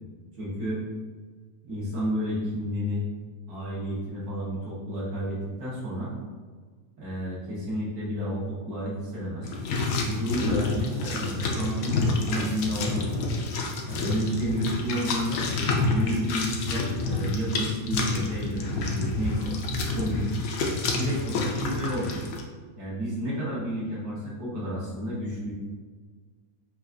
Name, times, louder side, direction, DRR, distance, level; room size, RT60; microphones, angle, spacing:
voice 1, 0.4-0.8 1.7-3.0 3.5-6.1 7.0-9.5 10.0-13.2 13.9-15.4 15.8-19.5 19.9-20.3 20.9-22.2 22.7-25.5, equal, 80° right, -8 dB, 1.7 m, -31 dB
sound 1, 9.4-22.4, left 3 dB, 75° left, 1.0 m, -28 dB
5.7 x 2.5 x 2.5 m, 1.5 s
omnidirectional pair, 1.6 m